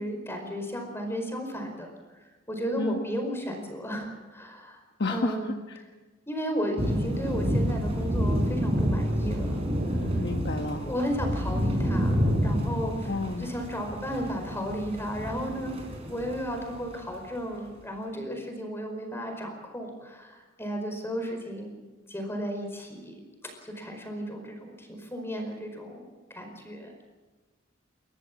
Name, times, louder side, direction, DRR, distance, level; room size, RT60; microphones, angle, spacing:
voice 1, 0.0-1.9 2.5-4.8 5.1-5.5 6.3-9.6 10.8-15.8 16.1-21.7 22.1-23.2 23.6-26.0 26.3-26.9, equal, 15° left, 4 dB, 4.8 m, -34 dB
voice 2, 5.0-5.8 10.2-10.9 13.1-13.5, left 3 dB, 60° left, 4 dB, 1.2 m, -31 dB
sound 1, 6.8-16.9, equal, 30° right, 5.2 m, -28 dB
29.0 x 14.0 x 7.5 m, 1.2 s
head